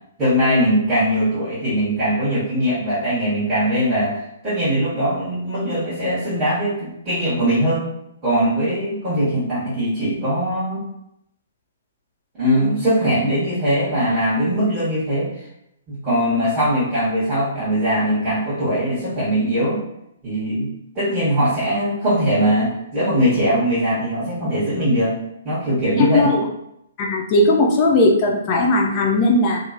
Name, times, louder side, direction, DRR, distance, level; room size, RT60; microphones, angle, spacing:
voice 1, 0.2-7.9 8.2-10.9 12.4-15.3 15.9-19.8 20.2-20.7 20.9-25.2 25.4-26.3, equal, 15° right, -14 dB, 1.1 m, -21 dB
voice 2, 27.0-29.6, left 2 dB, 30° left, -1 dB, 0.4 m, -17 dB
2.8 x 2.0 x 2.5 m, 0.80 s
figure-of-eight pair, 120°, 0 cm